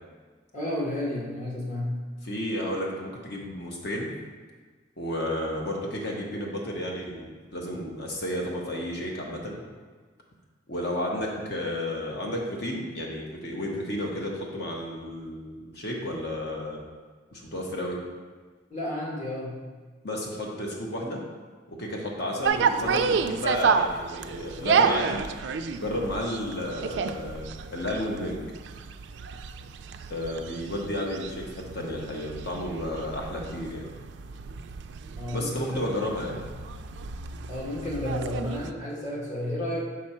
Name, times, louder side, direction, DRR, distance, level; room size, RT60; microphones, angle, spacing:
voice 1, 0.5-2.0 18.7-19.6 35.2-35.9 36.2-36.4 37.5-39.8, left 1 dB, 40° left, -5 dB, 1.6 m, -32 dB
voice 2, 2.2-4.1 5.0-9.6 10.7-16.8 17.3-18.0 20.0-21.2 21.7-25.2 25.7-28.4 30.1-33.9 35.3-36.4, left 1 dB, 60° left, -1 dB, 1.1 m, -32 dB
sound 1, 22.4-38.7, right 6 dB, 65° right, 0.3 m, -30 dB
6.3 x 4.2 x 4.3 m, 1.4 s
head